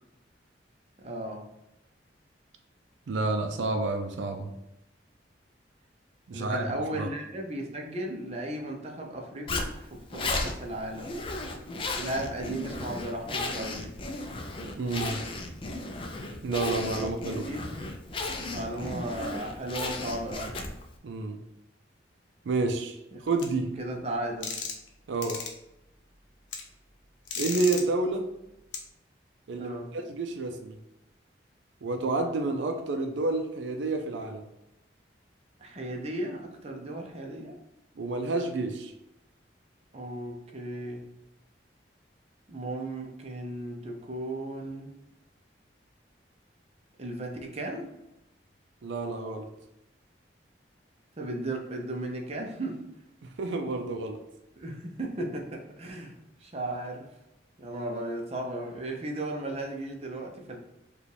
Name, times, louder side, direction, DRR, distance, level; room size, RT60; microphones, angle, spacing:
voice 1, 1.0-1.5 6.3-11.1 12.0-13.9 17.0-17.6 18.5-20.5 23.1-23.2 23.8-24.6 29.5-29.9 35.6-37.6 39.9-41.0 42.5-45.0 47.0-47.9 51.2-52.8 54.6-56.1 56.4-57.1 57.6-60.6, right 1 dB, 35° right, 1 dB, 0.6 m, -35 dB
voice 2, 3.1-4.5 6.3-6.7 7.0-7.1 14.6-15.2 16.4-17.5 21.0-21.4 22.4-23.7 25.1-25.4 27.4-28.3 29.5-30.8 31.8-34.5 38.0-38.9 48.8-49.5 53.2-54.2, right 3 dB, 80° right, 5 dB, 0.4 m, -29 dB
Zipper (clothing), 9.5-20.9, left 2 dB, 30° left, 0.4 m, -35 dB
sound 1, 23.4-23.5 24.4-24.9 25.2-25.5 26.5-26.6 27.3-27.8 28.7-28.8, left 5 dB, 85° left, 0.7 m, -34 dB
4.8 x 2.3 x 3.3 m, 0.88 s
head